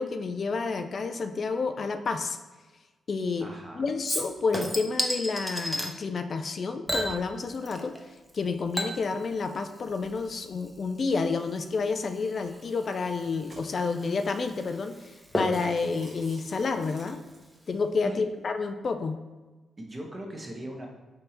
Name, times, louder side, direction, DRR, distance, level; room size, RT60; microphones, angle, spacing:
voice 1, 0.0-2.4 3.1-3.5 3.8-7.9 8.3-15.1 15.4-17.2 17.7-19.2, left 4 dB, 55° left, 8 dB, 0.3 m, -29 dB
voice 2, 3.4-3.8 18.0-18.2 19.8-20.9, right 1 dB, 35° right, 0 dB, 1.0 m, -39 dB
Chink clink / Liquid, 4.1-5.9 6.9-8.0 8.3-17.3 17.7-17.8, equal, ahead, 0.8 m, -35 dB
sound 1, 12.1-12.4 13.0-14.0 14.6-14.7 14.9-15.1 15.4-17.6, right 1 dB, 55° right, 1.4 m, -53 dB
3.4 x 2.7 x 4.2 m, 1.2 s
hypercardioid pair, 45°, 0 cm